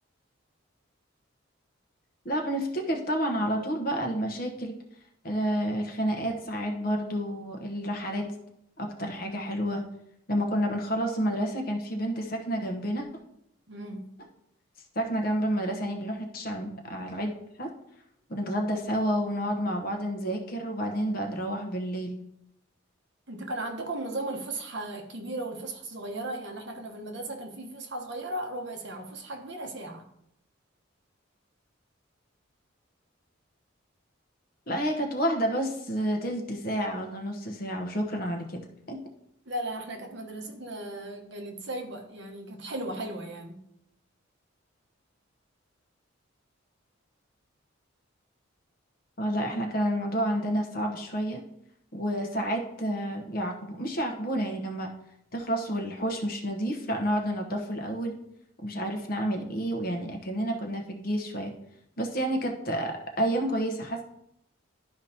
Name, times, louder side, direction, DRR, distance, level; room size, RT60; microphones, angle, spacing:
voice 1, 2.2-4.8 5.2-8.3 8.8-9.8 10.3-13.1 14.9-17.3 17.6-17.7 18.3-22.2 34.7-38.6 38.9-39.0 49.2-51.4 51.9-54.9 55.3-58.2 58.6-61.5 62.0-64.0, equal, 45° left, 2 dB, 1.1 m, -30 dB
voice 2, 13.7-14.1 23.3-30.0 39.5-43.6, right 1 dB, 60° right, 2 dB, 1.1 m, -36 dB
11.5 x 4.9 x 2.9 m, 0.77 s
head